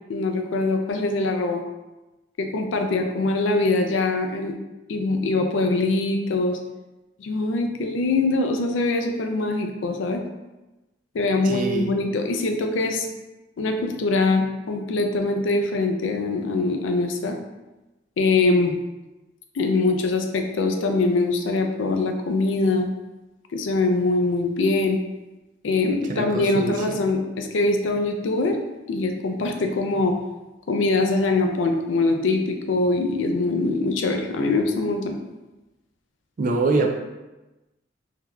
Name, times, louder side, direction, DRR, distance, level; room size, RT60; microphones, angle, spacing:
voice 1, 0.1-1.6 2.4-4.5 4.9-6.6 7.2-10.2 11.1-13.1 13.6-17.4 18.2-18.7 19.5-22.9 23.5-25.0 25.6-28.6 28.9-30.2 30.7-35.2, left 3 dB, 85° left, 4 dB, 0.4 m, -23 dB
voice 2, 11.4-12.0 26.1-27.0 36.4-36.9, right 3 dB, 45° right, 3 dB, 0.3 m, -24 dB
3.8 x 2.7 x 2.2 m, 1.1 s
head